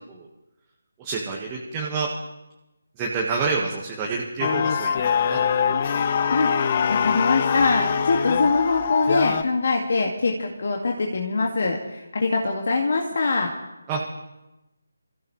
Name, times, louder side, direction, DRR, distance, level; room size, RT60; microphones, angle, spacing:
voice 1, 1.0-2.1 3.0-5.9 13.9-14.0, right 4 dB, 15° right, -3 dB, 1.6 m, -28 dB
sound 1, 4.4-9.4, left 7 dB, 35° left, 0.6 m, -23 dB
voice 2, 6.3-13.5, left 3 dB, 50° left, 0 dB, 2.0 m, -23 dB
27.5 x 15.0 x 3.2 m, 0.99 s
figure-of-eight pair, 155°, 0 cm